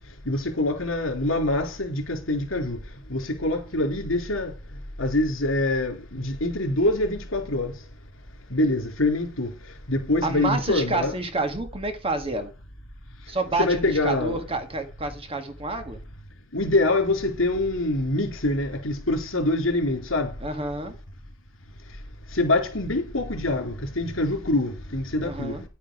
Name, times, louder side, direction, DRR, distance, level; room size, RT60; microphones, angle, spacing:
voice 1, 0.3-2.8 3.1-4.5 5.0-7.7 8.5-9.5 9.9-11.1 13.6-14.4 16.5-20.3 22.3-25.6, left 2 dB, 75° left, 3.9 m, -25 dB
voice 2, 10.2-12.5 13.3-16.0 20.4-20.9 25.2-25.6, right 2 dB, 30° right, 1.6 m, -29 dB
11.0 x 8.9 x 4.7 m
head